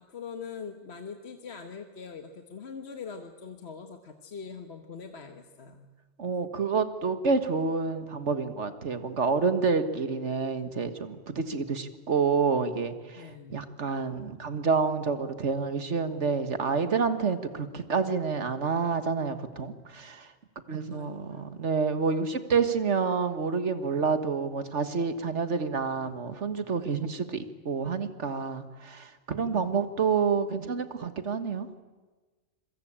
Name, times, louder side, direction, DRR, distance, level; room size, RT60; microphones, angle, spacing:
voice 1, 0.0-5.9 13.2-13.6 20.9-21.6 29.5-29.7, left 5 dB, 55° left, 6 dB, 1.5 m, -43 dB
voice 2, 6.2-20.3 20.7-31.7, right 5 dB, 65° right, 10 dB, 1.8 m, -28 dB
26.0 x 23.0 x 8.8 m, 1.3 s
omnidirectional pair, 1.3 m